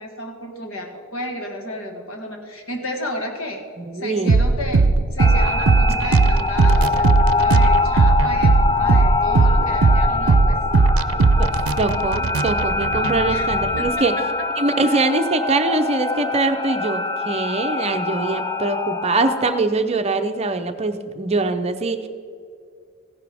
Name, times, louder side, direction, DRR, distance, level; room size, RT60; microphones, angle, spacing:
voice 1, 0.0-3.6 3.9-10.6 13.3-14.2 14.8-15.1, left 1 dB, 70° left, 3 dB, 1.8 m, -32 dB
voice 2, 3.8-4.4 11.4-11.5 11.8-14.1 14.6-22.1, right 3 dB, 30° right, 7 dB, 0.6 m, -23 dB
sound 1, 4.3-13.9, right 3 dB, 80° right, 0.5 m, -18 dB
sound 2, 5.2-19.6, left 3 dB, 15° left, 0.4 m, -24 dB
15.5 x 11.0 x 3.5 m, 2.2 s
head